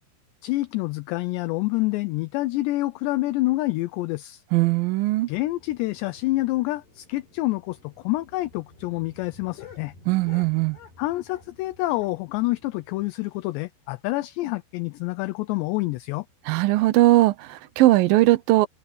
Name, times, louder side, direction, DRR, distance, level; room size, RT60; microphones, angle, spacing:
voice 1, 0.4-4.4 5.3-9.9 11.0-16.3, left 19 dB, 80° left, 2.8 m, -27 dB
voice 2, 4.5-5.3 10.1-10.8 16.5-18.7, right 18 dB, 85° right, 2.0 m, -19 dB
sound 1, 5.3-13.1, left 1 dB, 50° left, 9.5 m, -54 dB
sound 2, 8.2-11.6 11.9-13.9 14.2-14.3 14.6-14.7 15.0-15.2 15.7-16.0 16.9-17.0, left 10 dB, 65° left, 7.9 m, -51 dB
open air
omnidirectional pair, 5.3 m